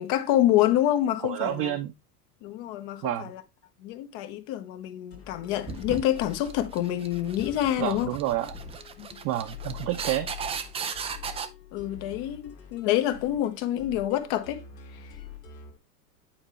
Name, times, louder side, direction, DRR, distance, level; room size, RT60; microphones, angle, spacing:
voice 1, 0.0-1.7 2.4-3.4 3.8-8.2 9.0-9.1 11.7-14.6, left 12 dB, 55° left, 1.1 m, -27 dB
voice 2, 1.2-1.9 3.0-3.3 7.8-8.6 9.2-10.3, right 13 dB, 45° right, 0.9 m, -29 dB
sound 1, 5.1-15.8, left 9 dB, 90° left, 2.0 m, -45 dB
sound 2, 5.7-11.5, right 6 dB, 15° right, 0.4 m, -37 dB
8.9 x 4.5 x 3.1 m
hypercardioid pair, 90°, 47 cm